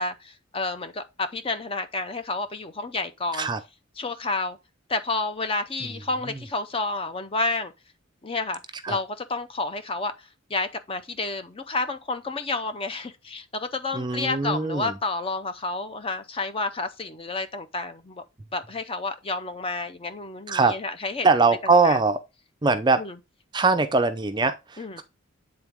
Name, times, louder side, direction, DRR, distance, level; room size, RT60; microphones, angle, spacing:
voice 1, 0.0-3.5 4.0-4.6 4.9-7.7 8.2-8.6 8.9-18.2 18.5-21.3 21.6-22.0 23.0-23.2 24.8-25.0, left 3 dB, 25° left, 0.6 m, -30 dB
voice 2, 13.9-15.0 20.5-20.7 21.2-22.2 22.6-23.0 23.5-25.0, right 4 dB, 20° right, 0.4 m, -22 dB
8.8 x 3.8 x 3.5 m
head